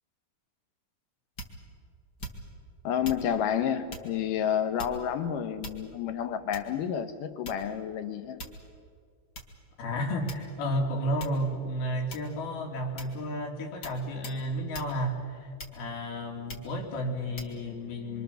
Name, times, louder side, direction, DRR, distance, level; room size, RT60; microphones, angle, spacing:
sound 1, 1.4-1.7 2.2-2.6 3.0-3.3 3.9-4.1 4.8-5.2 5.6-6.1 6.5-6.8 7.5-7.8 8.4-8.7 9.4-9.5 10.3-10.7 11.2-11.5 12.1-12.4 13.0-13.2 13.8-14.0 14.2-14.4 14.7-14.9 15.6-16.0 16.5-16.7 17.4-17.5, equal, 35° left, 2.0 m, -42 dB
voice 1, 2.8-8.4, left 8 dB, 70° left, 9 dB, 2.6 m, -30 dB
voice 2, 9.8-18.2, equal, 90° left, 1 dB, 4.6 m, -32 dB
26.0 x 25.0 x 7.0 m, 2.1 s
omnidirectional pair, 4.2 m